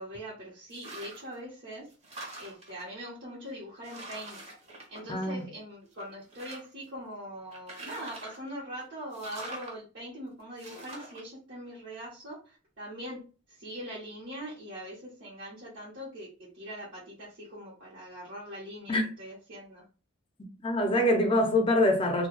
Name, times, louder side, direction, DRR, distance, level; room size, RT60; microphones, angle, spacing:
voice 1, 0.0-1.9 2.4-4.4 4.9-13.2 13.5-19.8, equal, 60° right, 0.8 m, -42 dB
sound 1, 0.7-1.3 1.7-2.8 3.4-3.5 3.8-5.6 5.9-6.8 7.5-8.5 9.1-9.7 10.6-11.2, right 2 dB, 35° right, 0.7 m, -44 dB
voice 2, 5.1-5.4 18.9-19.0 20.6-22.3, left 1 dB, 25° left, 0.4 m, -24 dB
2.2 x 2.1 x 2.9 m
head